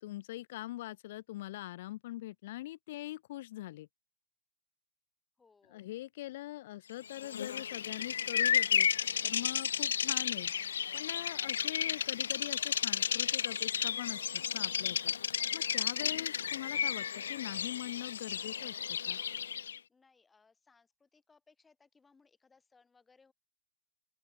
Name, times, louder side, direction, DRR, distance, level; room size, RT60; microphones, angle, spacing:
voice 1, 0.0-3.9 5.7-8.9 9.2-10.5 10.9-15.1 15.5-19.2, left 16 dB, 45° left, 1.4 m, -43 dB
voice 2, 5.4-5.9 19.9-23.3, left 4 dB, 10° left, 3.0 m, -67 dB
Bird vocalization bird call bird song, 7.1-19.8, left 8 dB, 90° left, 0.6 m, -33 dB
open air
hypercardioid pair, 165°, 0 cm